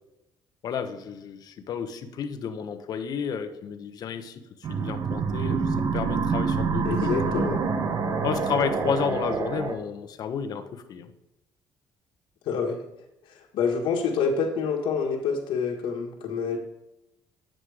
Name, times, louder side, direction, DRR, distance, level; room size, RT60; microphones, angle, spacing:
voice 1, 0.6-4.4 4.7-7.4 8.2-11.1, left 7 dB, 55° left, 8 dB, 1.0 m, -31 dB
sound 1, 4.6-9.7, right 5 dB, 50° right, 1.0 m, -27 dB
voice 2, 6.8-7.6 12.4-12.8 13.2-16.6, left 5 dB, 85° left, -1 dB, 1.6 m, -27 dB
9.5 x 7.6 x 4.9 m, 0.90 s
cardioid pair, 140°, 8 cm